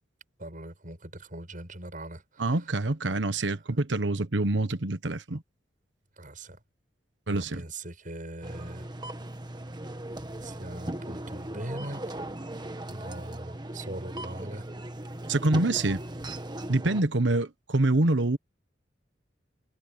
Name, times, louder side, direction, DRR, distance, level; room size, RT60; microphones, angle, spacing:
voice 1, 0.4-2.7 3.4-3.6 6.2-6.6 7.3-8.9 10.4-12.1 12.9-14.7, right 1 dB, 45° right, 8.0 m, -41 dB
voice 2, 2.4-5.4 7.3-7.6 15.3-16.0 16.7-18.4, right 2 dB, 80° right, 1.2 m, -26 dB
sound 1, 8.4-17.0, right 1 dB, 25° right, 1.6 m, -38 dB
head